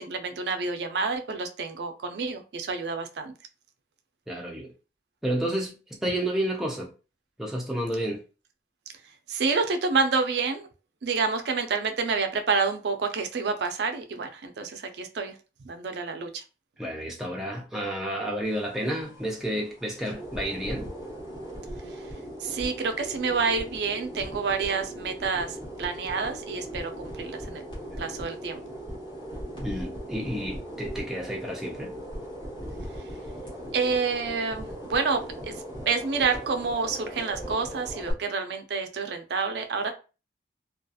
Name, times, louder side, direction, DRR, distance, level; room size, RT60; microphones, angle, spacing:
voice 1, 0.0-3.3 9.3-10.7 11.0-15.3 15.6-16.4 21.9-22.0 22.4-27.6 28.0-28.6 33.7-35.5 35.9-39.9, right 4 dB, 65° right, 0.4 m, -28 dB
voice 2, 4.3-4.7 5.2-6.9 7.4-8.2 16.8-20.9 29.6-32.0, right 1 dB, ahead, 0.5 m, -31 dB
sound 1, 18.4-38.1, equal, 25° left, 1.0 m, -39 dB
2.4 x 2.2 x 2.7 m
head